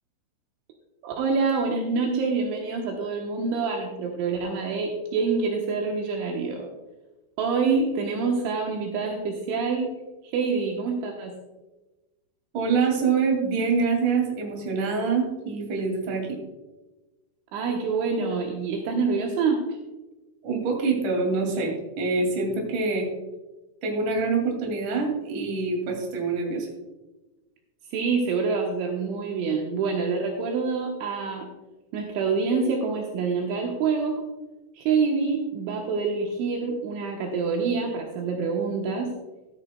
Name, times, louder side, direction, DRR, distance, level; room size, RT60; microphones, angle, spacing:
voice 1, 1.0-6.7 7.4-9.9 10.2-11.3 17.5-19.6 27.9-31.5 31.9-34.3 34.8-39.1, right 4 dB, 75° right, 0 dB, 3.3 m, -26 dB
voice 2, 12.5-16.4 20.4-23.1 23.8-26.7, right 4 dB, 45° right, 1 dB, 3.4 m, -25 dB
13.0 x 13.0 x 2.3 m, 1.1 s
omnidirectional pair, 5.7 m